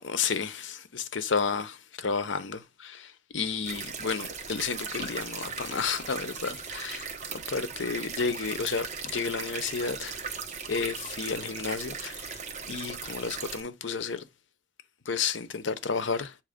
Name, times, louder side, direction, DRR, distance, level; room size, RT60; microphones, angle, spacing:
voice 1, 0.0-10.2 10.7-12.4 12.7-14.3 15.0-16.4, left 5 dB, 80° left, 0.8 m, -32 dB
sound 1, 3.6-13.6, right 5 dB, 40° right, 1.0 m, -38 dB
8.0 x 2.9 x 5.1 m
head